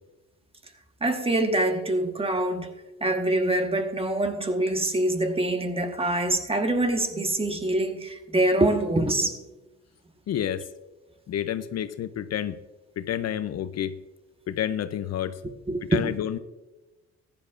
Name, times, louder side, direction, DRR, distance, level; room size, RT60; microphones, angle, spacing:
voice 1, 1.0-2.7 3.0-9.4 15.7-16.1, right 1 dB, 20° right, 1.3 m, -25 dB
voice 2, 10.3-10.6 11.3-12.6 13.0-14.0 14.5-15.4 15.9-16.4, left 10 dB, 60° left, 0.6 m, -29 dB
14.5 x 10.5 x 2.5 m
cardioid pair, 90°, 30 cm